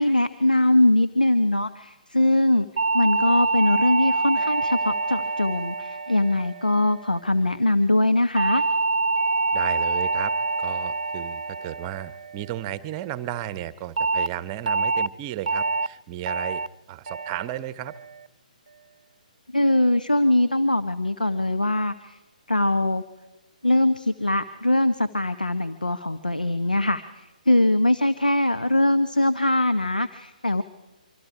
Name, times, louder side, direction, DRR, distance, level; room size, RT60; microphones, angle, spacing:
voice 1, 0.0-2.7 2.9-8.6 19.5-22.2 22.5-23.0 23.6-30.6, left 1 dB, 90° left, 10 dB, 1.0 m, -22 dB
sound 1, 2.8-7.2 8.4-12.8 14.0-14.3 14.7-15.1 15.5-15.9 16.3-16.7 17.1-17.5 17.9-18.3, right 3 dB, 65° right, 0.6 m, -26 dB
voice 2, 9.5-10.3 10.6-16.6 16.9-17.9, right 13 dB, 25° right, 16 dB, 0.9 m, -34 dB
25.5 x 25.0 x 4.9 m, 1.1 s
figure-of-eight pair, 135°, 4 cm